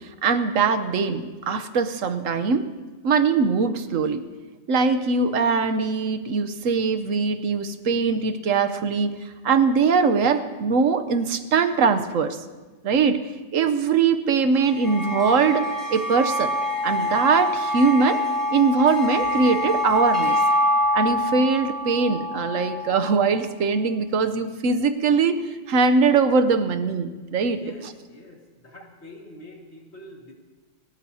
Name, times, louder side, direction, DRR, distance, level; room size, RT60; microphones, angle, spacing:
voice 1, 0.2-2.7 3.0-4.3 4.7-12.4 12.8-13.2 13.5-16.5 16.8-18.2 18.5-20.4 20.9-27.6, right 5 dB, 70° right, 10 dB, 1.1 m, -21 dB
sound 1, 14.6-23.2, left 1 dB, ahead, 5.0 m, -25 dB
voice 2, 27.5-30.3, left 1 dB, 50° left, 0 dB, 2.2 m, -45 dB
29.5 x 13.0 x 2.8 m, 1.3 s
omnidirectional pair, 1.4 m